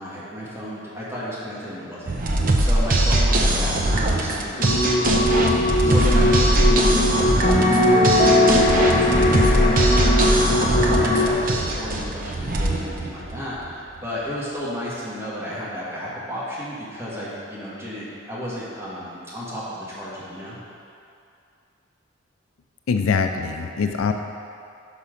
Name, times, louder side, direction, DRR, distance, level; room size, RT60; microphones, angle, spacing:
voice 1, 0.0-5.3 5.8-7.5 7.8-20.6, equal, 10° right, -9 dB, 1.4 m, -33 dB
sound 1, 2.1-13.7, right 1 dB, 40° right, 0.6 m, -21 dB
sound 2, 4.6-11.3, left 1 dB, 35° left, 0.8 m, -19 dB
voice 2, 22.9-24.1, left 5 dB, 85° left, 6 dB, 0.4 m, -23 dB
5.9 x 5.7 x 5.0 m, 2.5 s
head